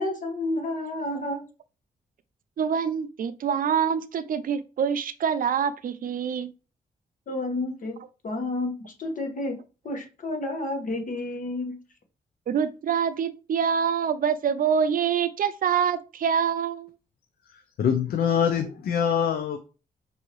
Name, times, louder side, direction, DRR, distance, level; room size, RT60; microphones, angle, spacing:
voice 1, 0.0-1.4 7.3-8.0 8.2-8.7 9.0-9.6 9.8-11.8, left 2 dB, 60° left, 1.4 m, -30 dB
voice 2, 2.6-6.5 12.5-16.9, right 7 dB, 60° right, 0.5 m, -25 dB
voice 3, 17.8-19.6, left 8 dB, 75° left, 0.5 m, -24 dB
5.4 x 2.7 x 3.1 m
cardioid pair, 75°, 16 cm